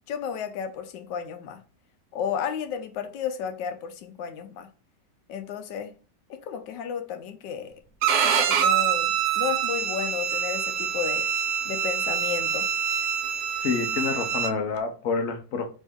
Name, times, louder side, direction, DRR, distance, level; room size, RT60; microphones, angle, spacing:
voice 1, 0.1-1.6 2.1-4.7 5.3-5.9 6.3-7.8 8.2-11.3 11.6-12.7, left 8 dB, 90° left, 1.3 m, -33 dB
Bowed string instrument, 8.0-14.5, right 8 dB, 70° right, 1.0 m, -25 dB
voice 2, 13.6-15.7, left 5 dB, 55° left, 1.0 m, -28 dB
4.3 x 2.6 x 3.5 m
omnidirectional pair, 1.9 m